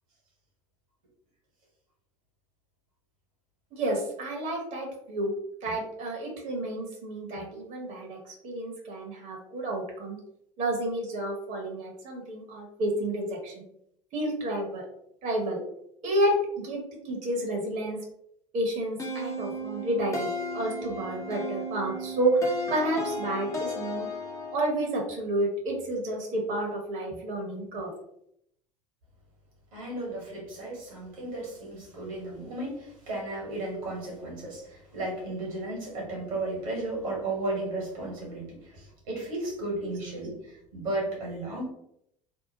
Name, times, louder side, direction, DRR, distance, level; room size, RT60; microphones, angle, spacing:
voice 1, 3.7-5.3 5.6-10.2 10.6-13.6 14.1-14.8 15.2-15.6 16.0-16.4 16.6-16.8 17.0-18.0 18.5-20.3 20.5-24.1 24.5-27.9 39.9-40.0, right 1 dB, 45° right, 0 dB, 0.9 m, -30 dB
sound 1, 19.0-24.8, left 1 dB, 15° left, 0.6 m, -35 dB
voice 2, 29.7-41.7, right 2 dB, 75° right, -2 dB, 1.3 m, -34 dB
2.7 x 2.0 x 2.8 m, 0.75 s
figure-of-eight pair, 70°, 18 cm